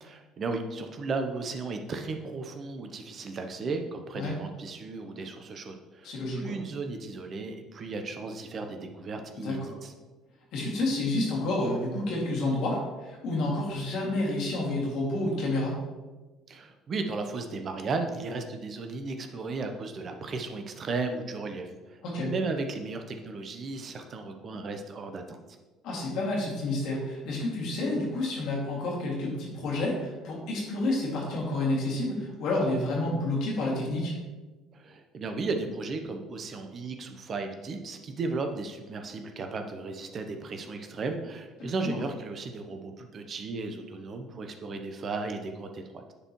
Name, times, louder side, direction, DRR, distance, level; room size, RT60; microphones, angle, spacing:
voice 1, 0.0-9.9 16.5-25.4 34.7-46.1, right 3 dB, 45° right, 6 dB, 0.7 m, -35 dB
voice 2, 6.0-6.6 9.4-9.8 10.5-15.8 22.0-22.3 25.8-34.1 41.6-42.0, left 2 dB, 60° left, -3 dB, 2.2 m, -29 dB
9.8 x 4.4 x 3.0 m, 1.2 s
hypercardioid pair, 55°, 0 cm